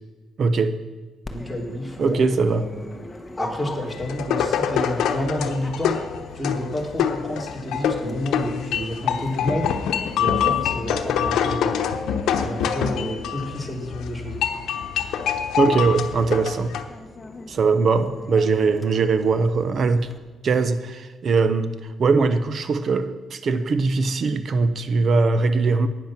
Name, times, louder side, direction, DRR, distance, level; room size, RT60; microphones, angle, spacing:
voice 1, 0.4-0.8 2.0-2.7 15.6-16.8 17.5-20.1 20.4-25.9, right 4 dB, 55° right, 11 dB, 0.9 m, -21 dB
Dog, 1.2-20.2, left 2 dB, 15° left, 1.2 m, -42 dB
voice 2, 1.3-3.0 3.4-6.0 6.3-9.7 10.2-11.8 12.4-14.4, left 1 dB, 5° right, 0 dB, 2.9 m, -29 dB
sound 1, 3.9-16.8, left 8 dB, 80° left, 0.9 m, -25 dB
10.5 x 9.3 x 6.0 m, 1.2 s
cardioid pair, 90°, 0 cm